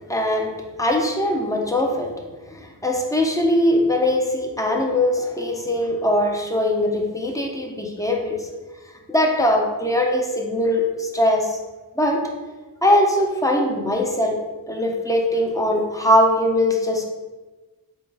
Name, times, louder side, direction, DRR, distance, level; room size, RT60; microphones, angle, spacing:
voice 1, 0.1-0.5 0.8-2.1 2.5-8.4 9.1-11.6 12.0-12.2 12.8-14.4 14.7-17.1, left 1 dB, 10° left, 0 dB, 0.5 m, -21 dB
4.2 x 2.2 x 3.3 m, 1.2 s
wide cardioid pair, 75°, 38 cm